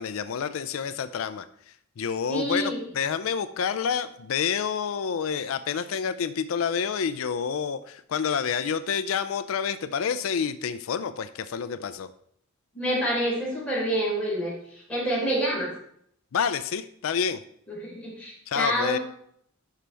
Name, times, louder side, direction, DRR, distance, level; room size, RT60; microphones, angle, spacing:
voice 1, 0.0-12.1 16.3-17.4 18.5-19.0, left 6 dB, 85° left, 12 dB, 0.4 m, -28 dB
voice 2, 2.3-2.8 12.7-14.5 14.9-15.7 17.7-19.0, equal, 5° left, -7 dB, 4.0 m, -27 dB
11.0 x 5.6 x 3.4 m, 0.68 s
head